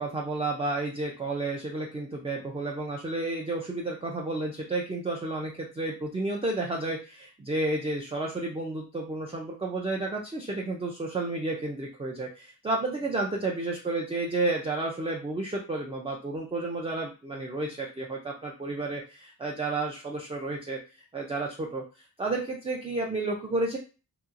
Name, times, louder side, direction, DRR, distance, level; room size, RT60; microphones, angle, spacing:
voice 1, 0.0-20.8 21.1-21.8 22.2-23.8, right 2 dB, 15° right, -1 dB, 0.4 m, -31 dB
2.9 x 2.8 x 2.4 m, 0.33 s
wide cardioid pair, 155°, 37 cm